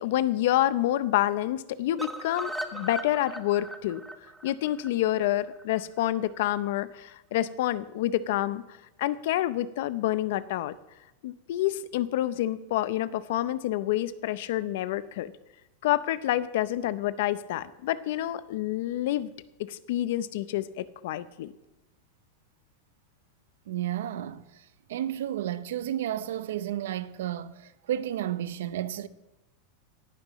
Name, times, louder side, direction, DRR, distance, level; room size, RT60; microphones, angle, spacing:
voice 1, 0.0-4.0 4.4-8.6 9.0-10.7 11.2-15.3 15.8-19.3 19.7-21.5, left 13 dB, 60° left, 0.5 m, -28 dB
sound 1, 2.0-6.0 6.3-6.4 6.7-6.8 7.1-7.2, right 1 dB, ahead, 0.6 m, -39 dB
voice 2, 23.7-29.1, right 11 dB, 80° right, 0.6 m, -32 dB
17.5 x 11.0 x 3.1 m
supercardioid pair, 170°, 0 cm